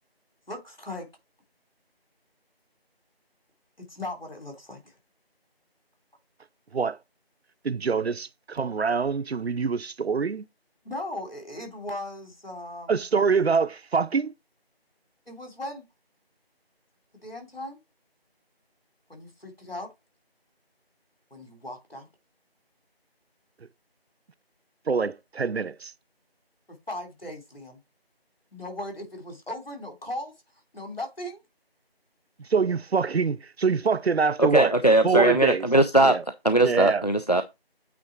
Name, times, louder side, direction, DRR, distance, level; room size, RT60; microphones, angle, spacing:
voice 1, 0.5-1.1 3.8-5.0 10.8-13.0 15.3-15.8 17.2-17.8 19.1-19.9 21.3-22.1 26.7-27.8 28.5-30.3 30.7-31.4, left 1 dB, 65° left, 3.1 m, -37 dB
voice 2, 7.6-10.5 12.9-14.3 24.9-25.9 32.5-34.7 35.0-35.7 36.0-36.2 36.6-37.0, right 5 dB, 85° right, 0.5 m, -25 dB
voice 3, 34.4-36.2 36.4-37.4, right 2 dB, 40° left, 0.5 m, -20 dB
8.4 x 3.7 x 4.5 m
figure-of-eight pair, 170°, 31 cm